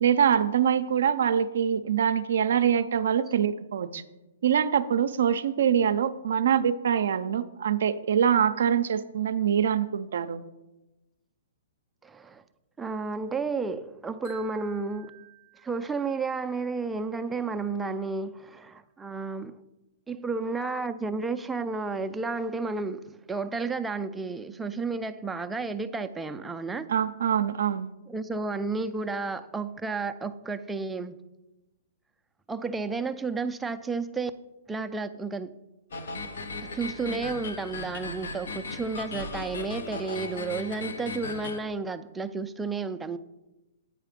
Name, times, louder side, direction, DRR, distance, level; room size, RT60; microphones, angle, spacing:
voice 1, 0.0-4.0 4.4-10.4 26.9-27.9, right 8 dB, 70° right, 0.4 m, -24 dB
voice 2, 12.0-12.4 12.8-15.2 15.6-19.6 20.1-26.9 28.1-31.2 32.5-34.3 34.7-35.5 36.7-43.2, right 4 dB, 10° right, 0.4 m, -32 dB
Wind chime, 14.2-17.4, right 8 dB, 50° left, 2.4 m, -53 dB
sound 1, 35.9-41.6, left 3 dB, 75° left, 0.9 m, -37 dB
9.0 x 4.9 x 5.1 m
hypercardioid pair, 140°, 0 cm